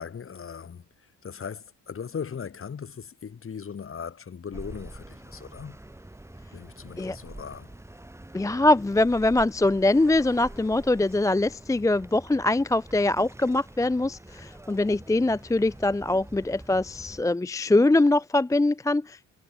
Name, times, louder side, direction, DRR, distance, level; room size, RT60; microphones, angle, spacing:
voice 1, 0.0-5.8 6.5-7.8, left 6 dB, 45° left, 5.9 m, -38 dB
sound 1, 4.5-17.2, right 1 dB, 10° right, 4.1 m, -46 dB
voice 2, 8.3-19.3, left 2 dB, 10° left, 0.6 m, -23 dB
cardioid pair, 90°, 30 cm